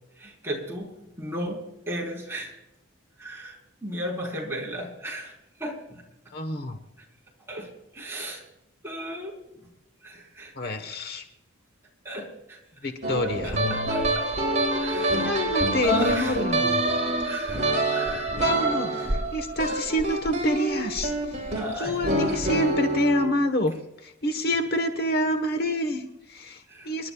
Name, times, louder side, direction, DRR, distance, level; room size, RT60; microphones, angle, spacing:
voice 1, 0.2-2.5 3.2-5.3 5.6-6.0 7.5-8.4 8.8-9.4 10.0-10.7 12.0-12.6 13.2-14.3 14.8-15.3 15.8-16.4 17.2-18.3 19.0-19.2 19.7-19.8 21.6-22.0 26.7-26.9, left 1 dB, 10° right, -2 dB, 3.9 m, -34 dB
voice 2, 6.3-6.8 10.6-11.2 12.8-13.6 15.2-16.8 18.4-23.7 24.0-27.1, left 1 dB, 50° left, 7 dB, 1.2 m, -27 dB
sound 1, 13.0-23.3, right 1 dB, 35° right, 3.8 m, -26 dB
29.5 x 12.0 x 2.3 m, 0.91 s
head